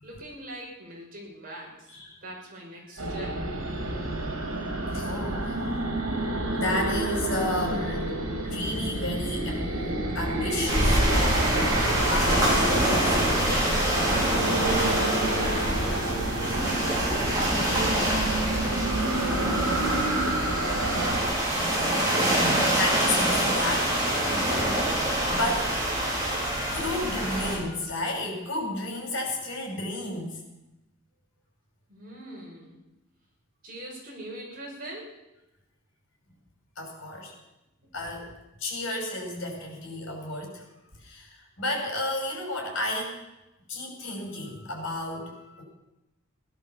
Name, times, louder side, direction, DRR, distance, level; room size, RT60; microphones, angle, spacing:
voice 1, 0.0-1.9 2.2-3.4 15.4-18.0 18.4-19.6 31.9-32.8 33.6-35.1, right 1 dB, 40° right, -3 dB, 6.0 m, -42 dB
voice 2, 1.9-2.2 2.9-3.0 3.7-5.8 6.3-8.1 8.4-12.7 13.0-14.7 21.5-30.4 36.8-37.3 37.9-38.3 38.6-40.7 41.0-43.1 43.7-45.6, left 1 dB, 60° left, 1 dB, 6.0 m, -33 dB
sound 1, 3.0-21.2, right 1 dB, 80° right, 3.7 m, -29 dB
sound 2, 10.7-27.6, right 1 dB, 15° right, 4.5 m, -25 dB
17.0 x 11.0 x 7.3 m, 0.95 s
head